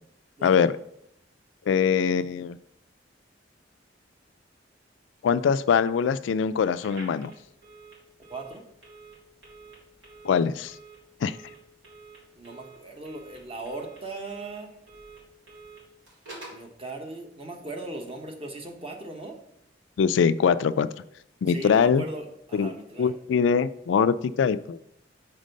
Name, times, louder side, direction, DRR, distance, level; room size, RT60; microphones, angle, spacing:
voice 1, 0.4-0.7 1.7-2.6 5.2-7.3 10.2-10.7 11.2-11.4 20.0-20.9 21.4-22.0 22.5-22.7 23.0-24.8, left 6 dB, 80° left, 13 dB, 0.3 m, -23 dB
Telephone, 6.8-16.7, right 3 dB, 90° right, 3.0 m, -49 dB
voice 2, 8.3-8.6 12.3-14.7 16.5-19.4 21.5-23.1, right 2 dB, 30° right, 2 dB, 1.1 m, -38 dB
6.3 x 4.5 x 5.2 m, 0.75 s
head